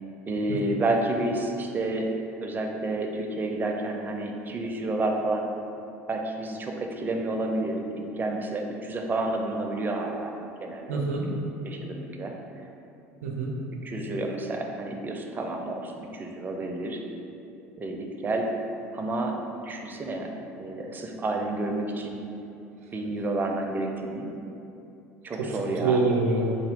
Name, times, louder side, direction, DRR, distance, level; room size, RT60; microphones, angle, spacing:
voice 1, 0.3-2.1 2.4-5.4 6.1-10.3 10.6-11.4 11.6-12.6 13.8-17.0 17.8-18.5 18.9-20.3 20.6-22.3 22.9-24.3 25.2-26.0, right 2 dB, 25° right, 2 dB, 0.4 m, -30 dB
voice 2, 10.9-11.3 13.2-13.5 25.4-26.4, right 3 dB, 80° right, -1 dB, 0.5 m, -26 dB
3.6 x 2.3 x 3.5 m, 2.8 s
hypercardioid pair, 70°, 8 cm